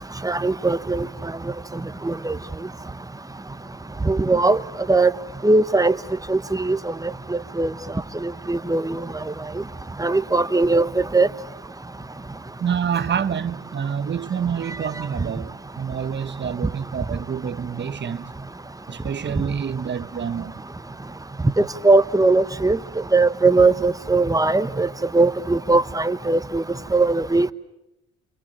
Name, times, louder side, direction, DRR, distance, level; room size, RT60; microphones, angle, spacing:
voice 1, 0.2-1.1 2.0-2.4 4.0-4.6 4.9-5.1 5.4-6.0 6.3-7.7 8.2-9.0 10.0-11.3 21.6-22.8 23.1-26.6 26.9-27.5, right 3 dB, 10° right, 1.0 m, -19 dB
voice 2, 12.6-18.3 18.9-20.6, right 7 dB, 35° right, 1.0 m, -27 dB
29.5 x 24.5 x 7.4 m
cardioid pair, 90°, 30 cm